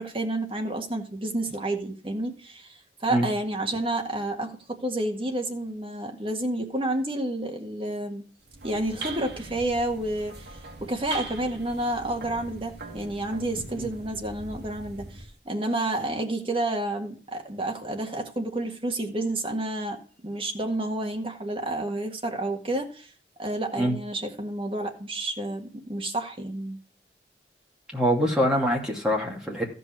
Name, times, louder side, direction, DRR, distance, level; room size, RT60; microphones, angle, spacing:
voice 1, 0.0-8.2 8.6-23.1 23.4-26.8, right 1 dB, 30° right, 2 dB, 1.7 m, -30 dB
sound 1, 8.4-15.4, right 2 dB, 65° right, 1.7 m, -41 dB
voice 2, 27.9-29.7, equal, 5° right, -2 dB, 2.5 m, -24 dB
14.5 x 5.5 x 4.6 m, 0.42 s
head